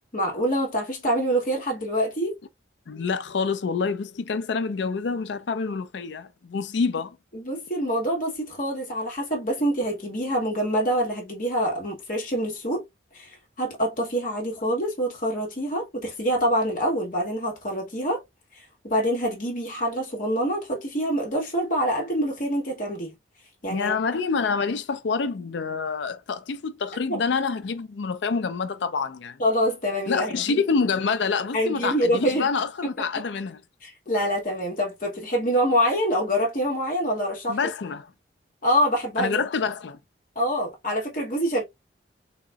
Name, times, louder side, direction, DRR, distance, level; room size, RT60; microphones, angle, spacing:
voice 1, 0.1-2.3 7.3-12.8 13.1-18.2 18.8-23.1 23.6-23.9 27.1-27.2 29.4-30.6 31.5-32.5 33.8-37.6 38.6-39.4 40.3-41.6, equal, 45° left, 1.6 m, -25 dB
voice 2, 2.9-7.2 23.7-29.4 30.1-33.6 37.5-38.1 39.2-40.0, left 5 dB, 70° left, 0.4 m, -27 dB
4.1 x 2.9 x 2.3 m
head